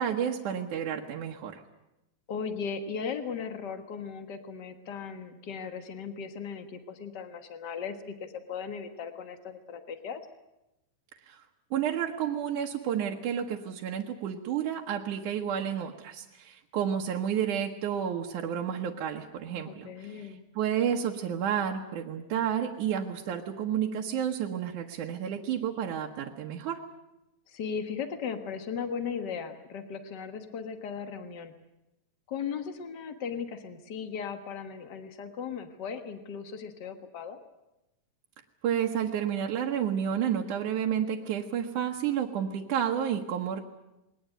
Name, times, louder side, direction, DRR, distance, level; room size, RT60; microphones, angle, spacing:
voice 1, 0.0-1.6 11.3-11.4 11.7-20.3 20.6-26.8 38.6-43.6, right 9 dB, 65° right, 0 dB, 2.3 m, -31 dB
voice 2, 2.3-10.2 19.6-20.4 27.5-31.5 32.3-37.4, left 6 dB, 70° left, 8 dB, 0.9 m, -37 dB
21.5 x 19.0 x 9.2 m, 0.94 s
omnidirectional pair, 4.4 m